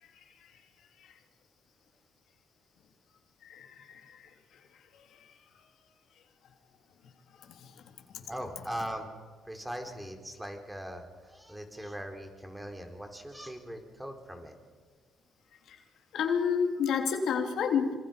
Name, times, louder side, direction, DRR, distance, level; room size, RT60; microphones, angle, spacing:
voice 1, 3.4-4.0 7.6-7.7 15.7-15.8 16.1-17.9, left 6 dB, 70° left, 3 dB, 3.3 m, -29 dB
voice 2, 8.3-9.1 9.4-14.6 16.7-16.9, equal, 5° right, 4 dB, 4.2 m, -40 dB
27.5 x 27.0 x 5.3 m, 1.5 s
cardioid pair, 135°, 0 cm